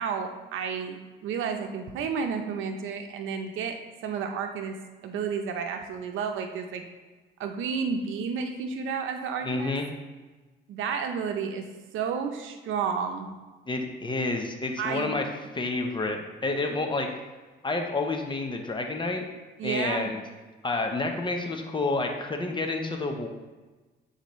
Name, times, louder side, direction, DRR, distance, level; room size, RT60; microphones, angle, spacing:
voice 1, 0.0-6.8 7.4-9.8 10.7-11.7 11.9-13.3 14.8-15.1 19.6-20.1, right 6 dB, 85° right, 5 dB, 0.7 m, -31 dB
voice 2, 9.4-9.9 13.7-15.2 15.5-17.1 17.6-19.2 19.6-20.2 20.6-23.3, left 3 dB, 25° left, 3 dB, 0.8 m, -29 dB
8.3 x 4.0 x 3.1 m, 1.3 s
cardioid pair, 90°, 20 cm